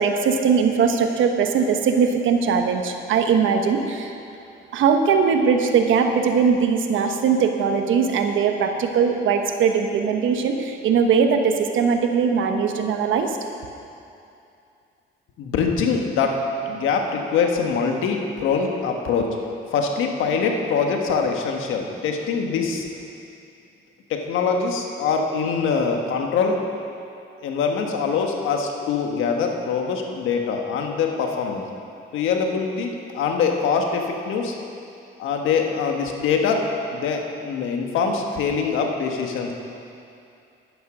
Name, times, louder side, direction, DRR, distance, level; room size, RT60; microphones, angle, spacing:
voice 1, 0.0-4.1 4.7-13.4, right 6 dB, 80° right, 5 dB, 1.1 m, -20 dB
voice 2, 15.4-16.4 16.7-19.3 19.7-22.9 24.1-26.6 27.4-31.6 32.1-34.5 35.2-36.6 36.9-39.5, left 5 dB, 90° left, 2 dB, 1.4 m, -23 dB
11.0 x 10.0 x 6.2 m, 2.6 s
cardioid pair, 90°, 20 cm